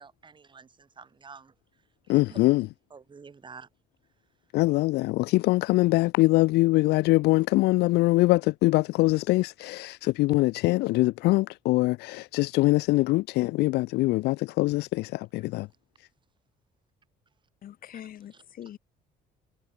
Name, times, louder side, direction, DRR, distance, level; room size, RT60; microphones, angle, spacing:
voice 1, 0.0-1.5 2.1-2.4 2.9-3.7, right 5 dB, 30° right, 1.7 m, -48 dB
voice 2, 2.1-2.7 4.5-15.7, left 20 dB, 80° left, 0.4 m, -23 dB
voice 3, 17.6-18.8, left 11 dB, 60° left, 3.8 m, -43 dB
cardioid pair, 110°, 17 cm